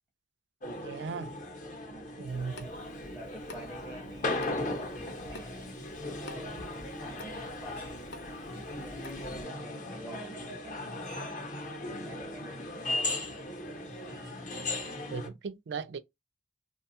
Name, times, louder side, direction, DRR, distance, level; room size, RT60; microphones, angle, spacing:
sound 1, 0.6-15.3, left 2 dB, 45° left, 0.7 m, -37 dB
voice 1, 0.8-1.4 2.2-2.5 15.1-16.0, right 5 dB, 75° right, 0.4 m, -37 dB
voice 2, 1.7-8.1 8.5-13.2, right 1 dB, 10° left, 0.6 m, -49 dB
Water tap faucet / Sink (filling or washing) / Drip, 2.3-9.4, left 1 dB, 80° left, 0.6 m, -50 dB
2.7 x 2.3 x 2.7 m
head